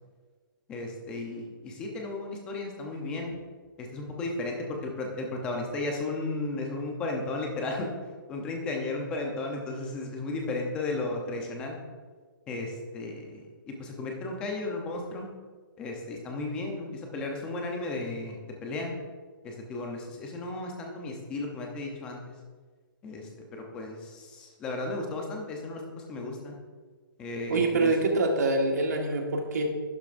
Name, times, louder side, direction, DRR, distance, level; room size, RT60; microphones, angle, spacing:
voice 1, 0.7-3.3 3.8-7.9 8.3-11.8 12.5-15.3 15.8-18.9 19.4-22.3 23.0-26.6 27.2-27.9, left 2 dB, 10° left, 1 dB, 0.7 m, -34 dB
voice 2, 27.5-29.6, right 2 dB, 45° right, 2 dB, 1.6 m, -25 dB
11.5 x 10.5 x 2.6 m, 1.5 s
hypercardioid pair, 175°, 12 cm